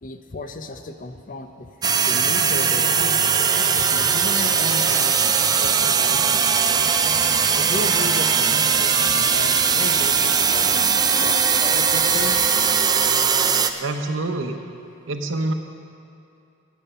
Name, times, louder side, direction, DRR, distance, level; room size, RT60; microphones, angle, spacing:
voice 1, 0.0-6.4 7.5-12.5, left 2 dB, 45° left, 7 dB, 0.7 m, -34 dB
sound 1, 1.8-13.7, right 6 dB, 20° right, 0.4 m, -19 dB
Trumpet, 6.1-13.2, left 2 dB, 80° left, 2.1 m, -38 dB
voice 2, 13.8-14.6 15.1-15.5, right 2 dB, 90° right, 6 dB, 0.9 m, -26 dB
12.0 x 9.2 x 5.6 m, 2.7 s
head